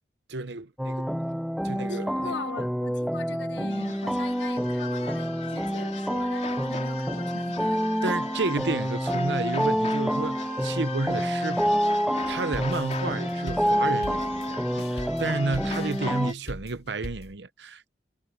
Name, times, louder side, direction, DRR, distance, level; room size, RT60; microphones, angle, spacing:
voice 1, 0.3-1.4 1.6-2.3 8.0-12.0 12.3-17.9, right 3 dB, 75° right, 0.9 m, -31 dB
sound 1, 0.8-16.3, equal, ahead, 0.8 m, -28 dB
voice 2, 1.8-7.8 15.7-15.9, left 4 dB, 85° left, 1.5 m, -41 dB
sound 2, 3.7-16.3, left 4 dB, 40° left, 3.7 m, -40 dB
sound 3, 12.3-17.4, left 1 dB, 60° left, 2.9 m, -40 dB
head